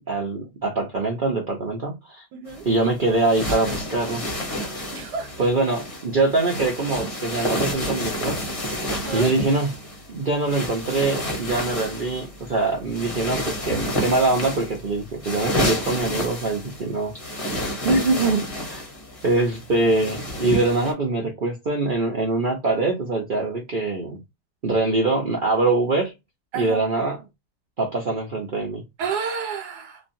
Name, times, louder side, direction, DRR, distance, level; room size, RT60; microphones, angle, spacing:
voice 1, 0.0-2.3 2.6-4.2 5.4-8.4 9.1-9.7 10.1-17.1 17.8-18.8 19.2-24.2 24.6-26.1 26.5-27.2 27.8-28.8, right 3 dB, 60° right, 0.5 m, -23 dB
voice 2, 2.3-2.6 4.9-5.3 8.9-9.3 26.5-26.8 29.0-30.0, right 6 dB, 85° right, 1.4 m, -30 dB
sound 1, 2.5-20.9, equal, 25° left, 0.8 m, -30 dB
3.1 x 2.3 x 2.5 m
omnidirectional pair, 1.7 m